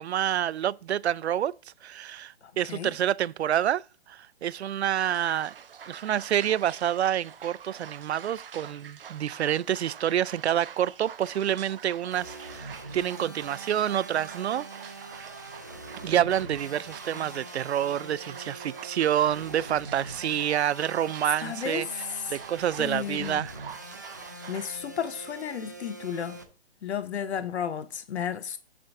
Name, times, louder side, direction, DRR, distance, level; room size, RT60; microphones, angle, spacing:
voice 1, 0.0-1.5 1.8-5.5 5.9-14.7 15.1-15.3 16.0-21.9 22.3-23.5, right 10 dB, 80° right, 0.5 m, -28 dB
voice 2, 2.4-2.9 21.4-22.4 22.8-23.4 24.5-26.4 26.8-28.6, left 8 dB, 80° left, 0.8 m, -33 dB
sound 1, 5.0-24.8, right 8 dB, 60° right, 0.9 m, -46 dB
sound 2, 12.1-26.4, right 2 dB, 20° right, 0.4 m, -43 dB
8.5 x 3.5 x 6.5 m
hypercardioid pair, 170°, 32 cm